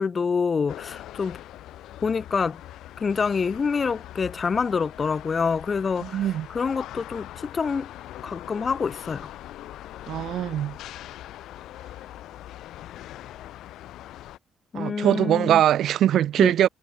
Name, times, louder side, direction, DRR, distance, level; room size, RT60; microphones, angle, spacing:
voice 1, 0.0-1.4 2.0-2.6 3.0-7.9 8.2-9.3 14.7-15.6 16.4-16.5, left 5 dB, 30° left, 1.7 m, -26 dB
sound 1, 0.7-14.4, left 13 dB, 80° left, 5.5 m, -42 dB
voice 2, 6.0-6.5 10.1-10.8 14.7-16.7, right 11 dB, 65° right, 1.8 m, -22 dB
cardioid pair, 125°, 0 cm